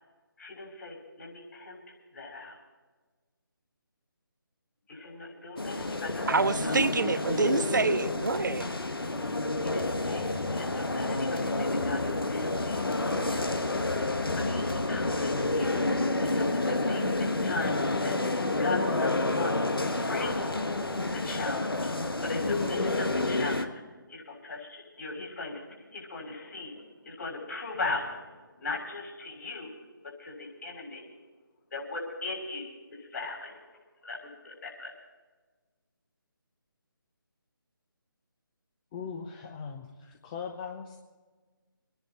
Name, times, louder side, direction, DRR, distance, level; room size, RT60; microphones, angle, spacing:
voice 1, 0.4-1.8 2.1-2.6 4.9-6.8 7.0-7.5 9.6-12.9 13.2-13.5 14.3-20.7 21.1-23.8 24.1-31.2 31.7-34.9, left 3 dB, 50° left, 6.5 m, -39 dB
sound 1, 5.6-23.6, left 2 dB, 80° left, 1.4 m, -29 dB
voice 2, 6.3-8.7, right 4 dB, 55° right, 0.6 m, -27 dB
voice 3, 38.9-41.0, left 6 dB, 20° left, 0.9 m, -40 dB
26.0 x 10.5 x 4.2 m
figure-of-eight pair, 150°, 12 cm